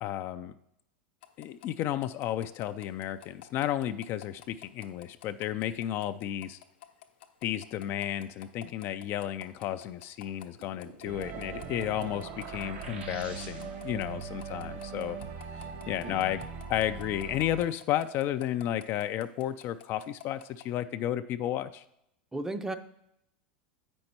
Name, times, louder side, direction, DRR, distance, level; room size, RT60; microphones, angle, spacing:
voice 1, 0.0-0.5 1.4-6.6 7.4-15.2 15.5-16.4 16.7-21.8, left 12 dB, 45° left, 11 dB, 0.4 m, -32 dB
sound 1, 1.2-20.7, left 13 dB, 75° left, 0.8 m, -50 dB
sound 2, 10.4-14.0, right 4 dB, 85° right, 1.3 m, -47 dB
sound 3, 11.1-17.7, right 6 dB, 40° right, 1.0 m, -41 dB
voice 2, 22.3-22.7, right 2 dB, 10° right, 10 dB, 0.5 m, -34 dB
7.7 x 5.3 x 4.5 m, 0.79 s
hypercardioid pair, 110°, 6 cm